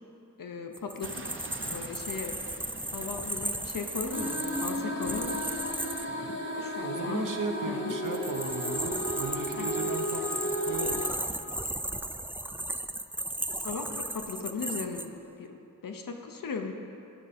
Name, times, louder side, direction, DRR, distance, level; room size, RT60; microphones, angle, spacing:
voice 1, 0.4-1.3 1.6-2.3 2.9-5.5 6.5-7.3 7.7-8.0 9.6-9.7 13.6-15.6 15.8-16.7, left 5 dB, 75° left, 4 dB, 0.8 m, -37 dB
sound 1, 0.7-6.1 7.9-15.1, right 1 dB, 5° right, 0.3 m, -35 dB
sound 2, 1.0-6.4, right 3 dB, 40° right, 0.7 m, -48 dB
sound 3, 4.1-11.1, equal, 35° left, 1.0 m, -34 dB
voice 2, 6.8-11.0, right 3 dB, 65° right, 3 dB, 0.9 m, -36 dB
12.5 x 5.0 x 4.2 m, 2.8 s
wide cardioid pair, 65°, 33 cm